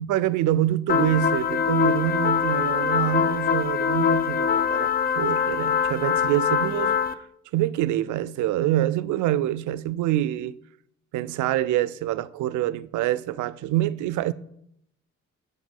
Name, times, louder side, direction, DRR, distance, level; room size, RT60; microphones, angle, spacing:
voice 1, 0.0-7.0 7.5-10.6 11.1-14.3, right 14 dB, 75° right, 0.5 m, -26 dB
sound 1, 0.9-7.1, left 7 dB, 30° left, 0.5 m, -23 dB
7.8 x 5.1 x 5.3 m
cardioid pair, 90°, 30 cm